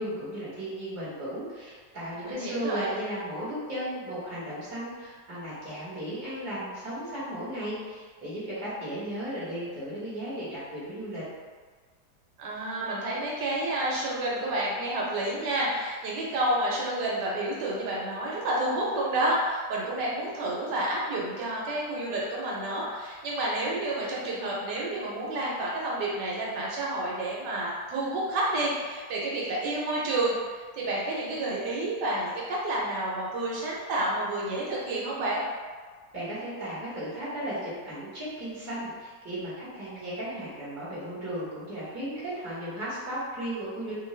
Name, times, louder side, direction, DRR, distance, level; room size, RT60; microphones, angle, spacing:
voice 1, 0.0-11.2 36.1-43.9, right 1 dB, 15° right, -10 dB, 0.7 m, -35 dB
voice 2, 2.2-2.9 12.4-35.4, right 1 dB, 75° right, -4 dB, 1.2 m, -30 dB
2.8 x 2.3 x 3.1 m, 1.5 s
omnidirectional pair, 1.9 m